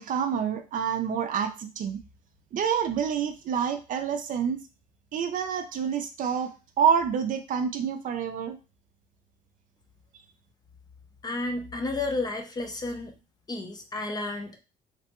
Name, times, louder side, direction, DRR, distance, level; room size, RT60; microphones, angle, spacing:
voice 1, 0.0-2.0 2.5-4.6 5.1-6.5 6.8-8.6, right 7 dB, 55° right, 7 dB, 0.5 m, -27 dB
voice 2, 11.2-13.1 13.5-14.6, left 2 dB, 25° left, 5 dB, 0.5 m, -32 dB
3.2 x 2.1 x 2.9 m, 0.31 s
cardioid pair, 110°, 17 cm